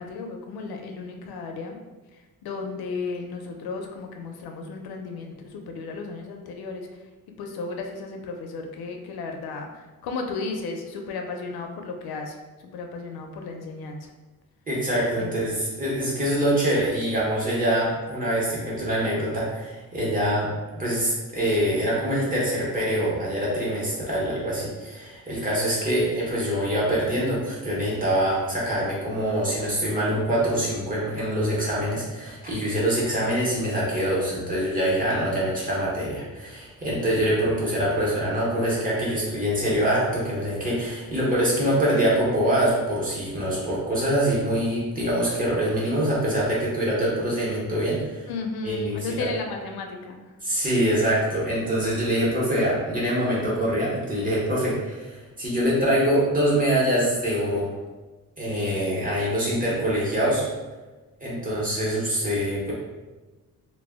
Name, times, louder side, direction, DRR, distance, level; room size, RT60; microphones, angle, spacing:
voice 1, 0.0-1.8 2.4-6.9 7.4-14.1 15.2-15.4 48.3-50.2, left 4 dB, 85° left, 3 dB, 0.5 m, -34 dB
voice 2, 14.7-48.2 48.6-49.3 50.4-57.7 58.4-60.4 61.2-62.7, equal, 25° right, -6 dB, 0.7 m, -24 dB
2.1 x 2.0 x 3.4 m, 1.2 s
wide cardioid pair, 170°, 36 cm